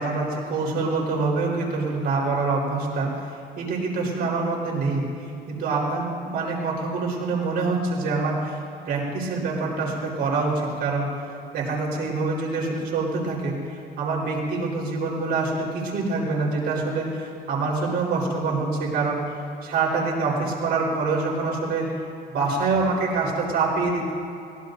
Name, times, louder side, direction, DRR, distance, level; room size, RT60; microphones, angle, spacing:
voice 1, 0.0-3.1 3.6-5.0 5.5-8.6 8.9-11.1 11.5-19.2 19.6-21.9 22.3-24.1, right 3 dB, 70° right, -4 dB, 4.3 m, -25 dB
23.0 x 19.0 x 2.7 m, 2.5 s
cardioid pair, 110°, 17 cm